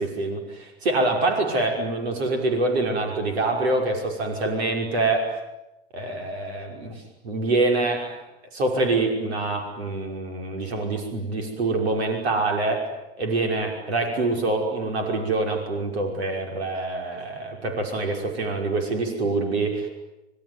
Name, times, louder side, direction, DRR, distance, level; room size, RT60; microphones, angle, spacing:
voice 1, 0.2-5.3 5.9-8.2 8.5-12.9 13.2-19.9, right 2 dB, 80° right, 3 dB, 5.8 m, -25 dB
26.0 x 22.5 x 9.6 m, 0.98 s
hypercardioid pair, 105°, 31 cm